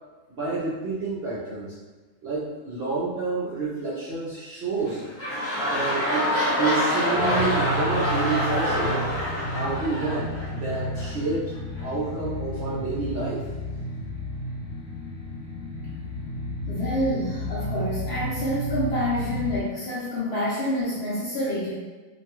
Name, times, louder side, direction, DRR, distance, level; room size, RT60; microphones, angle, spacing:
voice 1, 0.3-1.7 2.2-5.0 5.6-9.1 9.5-11.5 11.8-13.5, right 3 dB, 60° right, -8 dB, 0.7 m, -29 dB
sound 1, 4.7-11.1 11.8-11.9, equal, 10° left, 0.8 m, -26 dB
sound 2, 7.1-19.6, equal, 80° left, 1.1 m, -32 dB
voice 2, 15.6-16.0 16.7-21.7, left 1 dB, 60° left, -8 dB, 0.7 m, -28 dB
2.6 x 2.2 x 2.9 m, 1.3 s
omnidirectional pair, 1.6 m